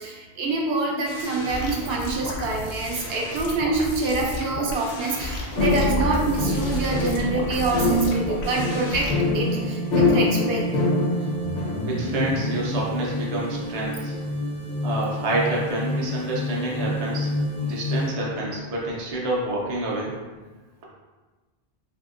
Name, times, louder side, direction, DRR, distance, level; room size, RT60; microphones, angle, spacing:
voice 1, 0.0-9.1 9.3-10.6, right 3 dB, 75° right, -1 dB, 0.8 m, -26 dB
sound 1, 1.0-9.1, left 1 dB, 80° left, 0.8 m, -34 dB
sound 2, 5.6-18.1, left 2 dB, 55° left, 0.5 m, -25 dB
voice 2, 11.8-14.1 14.8-17.3 17.6-20.1, right 1 dB, 45° right, -4 dB, 0.6 m, -28 dB
2.7 x 2.7 x 2.4 m, 1.3 s
omnidirectional pair, 1.0 m